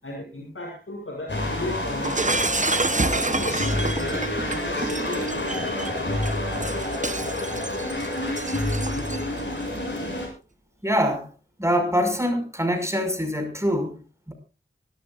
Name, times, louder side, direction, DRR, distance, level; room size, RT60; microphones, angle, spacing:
voice 1, 0.0-2.4 3.0-5.8 8.9-9.0, left 1 dB, 80° left, -2 dB, 6.8 m, -35 dB
sound 1, 1.3-10.3, left 1 dB, 60° left, 7.6 m, -28 dB
Shatter, 2.0-9.4, right 2 dB, 35° right, 0.9 m, -29 dB
voice 2, 10.8-11.3 11.6-14.0 14.3-14.4, equal, 15° right, 6 dB, 5.4 m, -24 dB
24.5 x 13.0 x 2.5 m, 0.33 s
wide cardioid pair, 45°, 21 cm